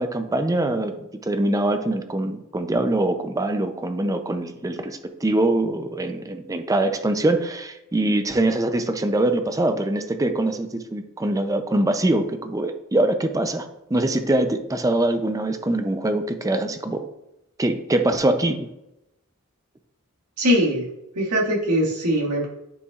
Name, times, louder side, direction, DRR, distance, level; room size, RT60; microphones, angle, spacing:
voice 1, 0.0-17.0 17.6-18.7, right 1 dB, 15° right, 8 dB, 0.4 m, -23 dB
voice 2, 20.4-20.8 21.2-22.5, equal, 85° right, -3 dB, 1.9 m, -21 dB
9.5 x 5.4 x 2.4 m, 0.89 s
head